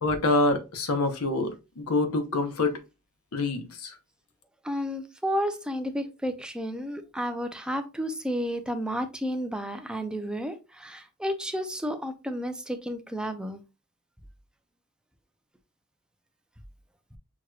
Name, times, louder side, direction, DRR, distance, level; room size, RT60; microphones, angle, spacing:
voice 1, 0.0-2.8 3.3-3.9, left 2 dB, 75° left, 1.0 m, -26 dB
voice 2, 4.6-13.6, equal, 5° right, 0.6 m, -32 dB
6.2 x 3.0 x 2.4 m
head